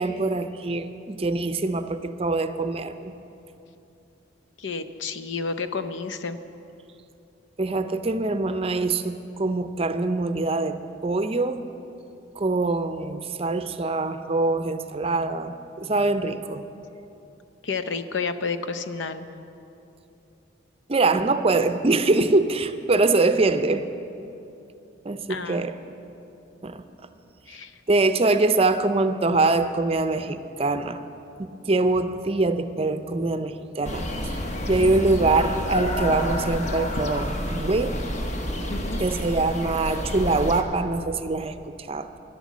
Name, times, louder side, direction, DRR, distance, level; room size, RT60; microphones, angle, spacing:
voice 1, 0.0-3.1 7.6-11.6 12.4-16.6 20.9-23.8 25.0-25.8 26.6-26.8 27.9-31.0 31.4-34.4 34.7-38.0 39.0-41.6 41.9-42.1, right 3 dB, 30° right, 10 dB, 0.5 m, -24 dB
voice 2, 4.6-6.4 17.6-19.3 25.3-25.7 27.5-27.7 38.7-39.0, left 4 dB, 75° left, 10 dB, 0.7 m, -30 dB
sound 1, 33.8-40.6, left 1 dB, 40° left, 1.0 m, -29 dB
11.5 x 11.5 x 7.3 m, 2.8 s
head